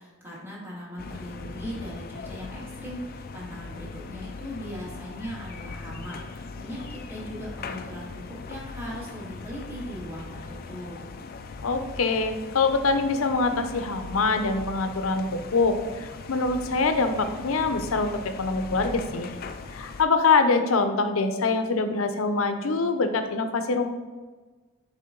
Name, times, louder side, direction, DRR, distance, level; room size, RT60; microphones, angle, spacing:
voice 1, 0.0-11.0, equal, 10° right, -6 dB, 2.1 m, -39 dB
sound 1, 1.0-20.0, left 4 dB, 45° left, 0.4 m, -40 dB
voice 2, 11.6-19.3 19.7-23.9, left 4 dB, 85° left, 8 dB, 0.7 m, -24 dB
6.7 x 4.9 x 3.8 m, 1.3 s
head